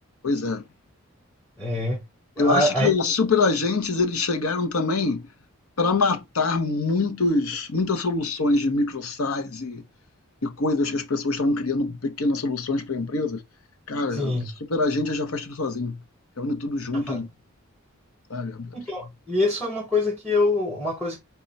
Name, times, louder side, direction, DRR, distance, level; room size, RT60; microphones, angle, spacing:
voice 1, 0.2-0.7 2.4-5.3 5.8-9.8 10.4-13.4 13.9-16.0 16.4-17.3 18.3-18.8, left 3 dB, 80° left, 0.8 m, -25 dB
voice 2, 1.6-2.0 2.4-2.9 14.1-14.5 16.9-17.2 18.7-21.2, left 2 dB, 10° left, 0.8 m, -25 dB
4.3 x 2.3 x 4.0 m
head